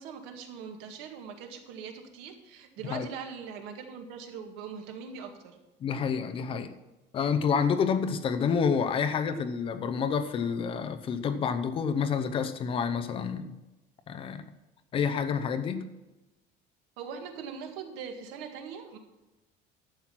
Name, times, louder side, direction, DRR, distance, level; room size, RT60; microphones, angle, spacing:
voice 1, 0.0-5.6 17.0-19.0, right 6 dB, 80° right, 5 dB, 1.9 m, -41 dB
voice 2, 5.8-6.7 7.1-13.6 14.1-14.4 14.9-15.9, left 6 dB, 30° left, 9 dB, 0.7 m, -28 dB
11.5 x 7.5 x 6.0 m, 1.0 s
cardioid pair, 180°, 19 cm